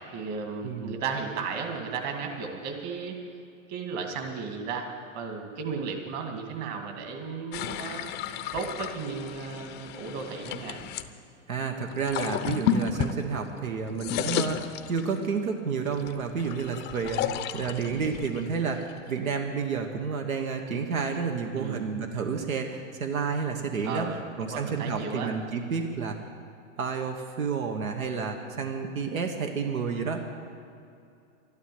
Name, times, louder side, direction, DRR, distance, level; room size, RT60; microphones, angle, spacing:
voice 1, 0.0-3.2 3.7-8.0 8.5-10.8 21.5-21.9 23.8-25.4, right 5 dB, 40° right, 4 dB, 2.1 m, -34 dB
voice 2, 0.6-1.0 11.5-24.1 24.4-26.2 26.8-30.2, right 5 dB, 85° right, 4 dB, 1.5 m, -30 dB
sound 1, 7.5-11.1 11.9-13.6 13.9-15.4 15.9-19.3, left 8 dB, 25° left, 0.6 m, -32 dB
12.0 x 12.0 x 7.8 m, 2.5 s
hypercardioid pair, 120°, 41 cm